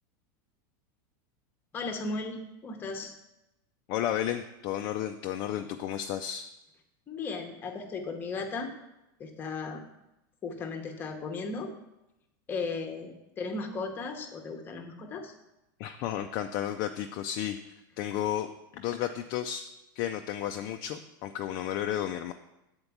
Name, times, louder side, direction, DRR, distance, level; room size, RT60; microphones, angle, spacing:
voice 1, 1.7-3.1 7.1-8.7 9.2-9.8 10.4-11.7 12.5-13.1 13.4-15.3, left 4 dB, 20° left, 4 dB, 0.9 m, -36 dB
voice 2, 3.9-6.5 15.8-17.6 18.0-19.7 20.0-22.3, left 11 dB, 35° left, 6 dB, 0.4 m, -32 dB
8.1 x 4.4 x 7.1 m, 0.92 s
supercardioid pair, 165°, 11 cm